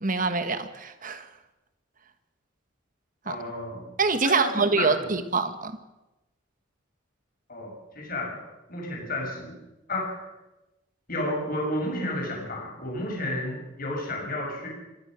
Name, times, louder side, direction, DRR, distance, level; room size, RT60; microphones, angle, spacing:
voice 1, 0.0-1.3 3.3-3.4 4.0-5.7, right 4 dB, 40° right, 10 dB, 1.5 m, -25 dB
voice 2, 3.2-3.9 4.2-5.2 7.5-8.4 8.7-9.5 9.9-10.3 11.1-14.7, left 1 dB, 45° left, -1 dB, 6.4 m, -32 dB
25.5 x 16.5 x 6.3 m, 1.0 s
head